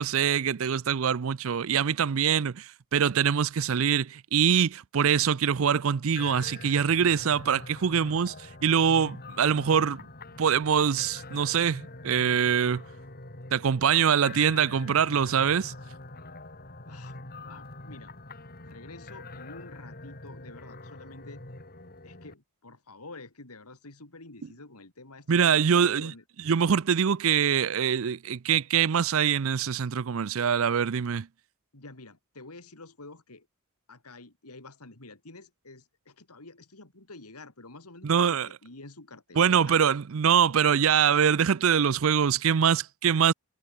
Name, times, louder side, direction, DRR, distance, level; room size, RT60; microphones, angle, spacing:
voice 1, 0.0-10.0 10.4-12.8 13.5-15.7 25.3-26.1 26.4-31.3 38.0-38.5 39.4-43.3, right 7 dB, 60° right, 0.5 m, -24 dB
sound 1, 6.2-22.3, left 2 dB, 40° left, 3.4 m, -44 dB
voice 2, 17.4-18.1 18.6-21.4 22.0-26.2 31.7-33.5 33.9-39.8, left 2 dB, 85° left, 3.3 m, -48 dB
head